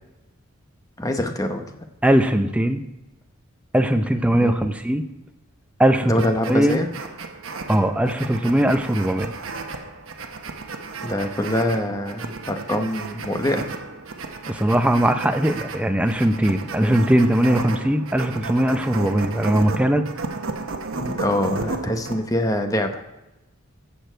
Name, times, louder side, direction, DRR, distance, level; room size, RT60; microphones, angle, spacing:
voice 1, 1.0-1.6 4.4-4.6 6.0-6.9 11.0-13.7 16.8-17.0 21.0-23.0, left 1 dB, 15° left, 5 dB, 0.9 m, -24 dB
voice 2, 2.0-2.8 3.7-5.0 5.8-6.1 6.5-6.8 7.7-9.3 14.5-20.0, right 1 dB, 5° right, 7 dB, 0.6 m, -20 dB
sound 1, 6.2-22.2, right 3 dB, 75° right, 1.0 m, -33 dB
14.5 x 7.0 x 4.5 m, 1.0 s
head